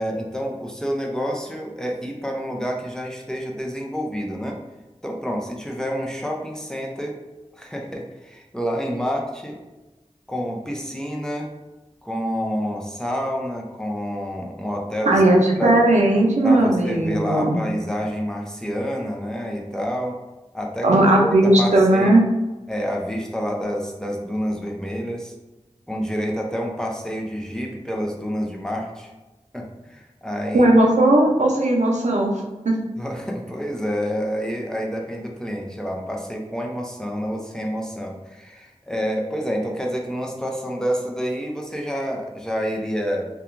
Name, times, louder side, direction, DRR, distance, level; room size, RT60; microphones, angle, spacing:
voice 1, 0.0-4.6 5.0-7.1 7.5-9.6 10.3-11.5 12.0-15.2 15.6-15.8 16.4-20.2 20.5-22.2 22.7-25.3 25.9-29.1 29.5-30.7 33.0-43.3, equal, 5° left, 0 dB, 0.5 m, -28 dB
voice 2, 15.1-17.6 20.8-22.2 30.5-32.3 32.6-32.7, right 1 dB, 85° right, -1 dB, 0.5 m, -17 dB
2.7 x 2.3 x 2.4 m, 1.1 s
wide cardioid pair, 40°, 12 cm